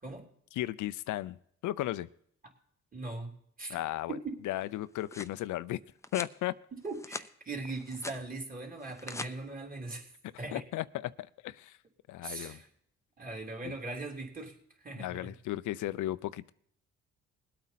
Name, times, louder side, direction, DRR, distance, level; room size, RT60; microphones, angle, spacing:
voice 1, 0.5-1.4 1.6-2.1 3.7-4.2 4.4-5.8 6.1-6.5 10.3-11.8 12.1-12.6 13.6-13.7 15.0-16.5, left 15 dB, 80° left, 15 dB, 0.5 m, -35 dB
voice 2, 2.9-3.3 3.6-3.8 4.1-4.3 6.7-10.1 10.4-10.6 12.2-12.6 13.2-15.3, right 3 dB, 30° right, 0 dB, 3.4 m, -40 dB
sound 1, 4.7-5.4 6.0-6.4 6.8-7.3 7.7-8.2 8.8-9.3, left 2 dB, 10° left, 0.6 m, -42 dB
20.5 x 8.6 x 4.1 m, 0.66 s
cardioid pair, 90°, 30 cm